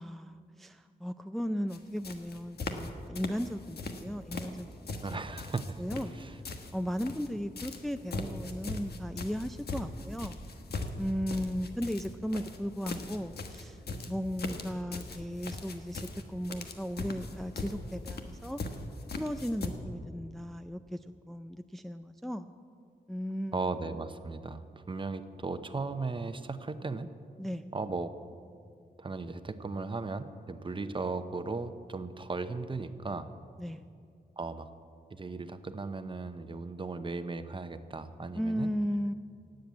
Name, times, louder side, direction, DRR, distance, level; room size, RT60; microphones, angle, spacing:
voice 1, 0.0-5.2 5.8-6.1 6.7-10.4 11.0-13.8 14.1-18.6 19.2-22.5 23.1-23.6 27.4-27.6 33.6-33.8 38.3-39.1, equal, ahead, 8 dB, 0.4 m, -36 dB
sound 1, 1.7-1.8 2.0-2.9 3.1-4.0 4.3-7.3 7.6-19.7, left 3 dB, 75° left, 1.3 m, -39 dB
voice 2, 5.0-5.8 6.2-6.3 23.5-27.1 27.7-28.1 29.0-33.3 34.4-34.7 35.1-38.7, right 3 dB, 30° right, 10 dB, 0.8 m, -36 dB
17.5 x 7.9 x 8.4 m, 2.3 s
wide cardioid pair, 95°, 17 cm